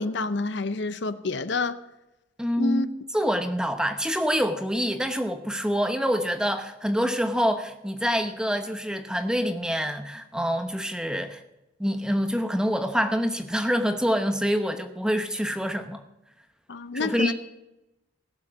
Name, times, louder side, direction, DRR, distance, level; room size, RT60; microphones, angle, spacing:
voice 1, 0.0-1.8 2.6-2.9 16.7-17.3, left 3 dB, 60° left, 0.7 m, -28 dB
voice 2, 2.4-2.8 3.1-11.4 11.8-16.0 16.9-17.3, equal, 5° right, 0.9 m, -26 dB
17.0 x 7.2 x 6.3 m
head